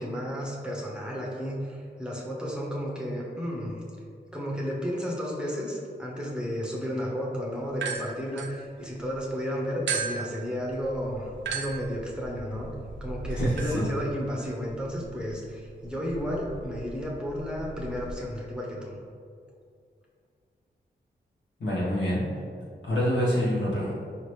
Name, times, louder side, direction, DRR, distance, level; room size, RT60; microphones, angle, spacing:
voice 1, 0.0-3.8 4.3-12.7 13.0-19.0, equal, 5° right, -4 dB, 0.9 m, -32 dB
sound 1, 7.7-9.2 9.9-18.2, right 5 dB, 85° right, 0.4 m, -37 dB
voice 2, 13.3-13.8 21.6-22.2 22.8-23.9, equal, 85° left, -8 dB, 1.4 m, -26 dB
4.7 x 2.9 x 3.3 m, 2.3 s
cardioid pair, 60°, 19 cm